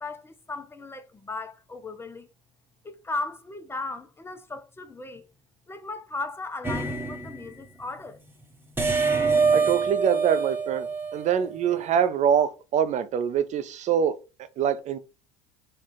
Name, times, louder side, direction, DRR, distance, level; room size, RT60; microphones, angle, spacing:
voice 1, 0.0-2.3 2.8-5.3 5.7-8.2, left 3 dB, 15° left, 0.7 m, -36 dB
sound 1, 6.6-7.6 8.8-11.6, right 4 dB, 15° right, 1.1 m, -25 dB
voice 2, 9.5-10.9 11.1-14.2 14.6-15.0, right 8 dB, 45° right, 0.7 m, -24 dB
4.5 x 2.4 x 3.8 m
hypercardioid pair, 80°, 17 cm